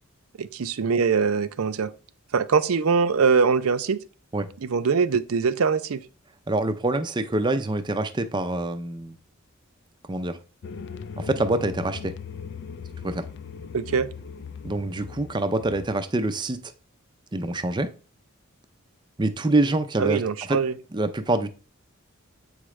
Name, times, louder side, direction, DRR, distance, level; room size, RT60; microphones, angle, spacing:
voice 1, 0.4-1.9 2.3-4.0 4.6-6.0 13.7-14.1 20.0-20.7, right 5 dB, 85° right, 0.5 m, -22 dB
voice 2, 6.5-9.2 10.1-10.4 11.2-12.1 13.0-13.2 14.6-16.7 17.3-17.9 19.2-20.2 20.5-20.6 20.9-21.5, right 2 dB, 20° right, 0.5 m, -25 dB
sound 1, 10.6-15.9, left 6 dB, 55° left, 0.4 m, -39 dB
7.8 x 4.9 x 3.2 m
head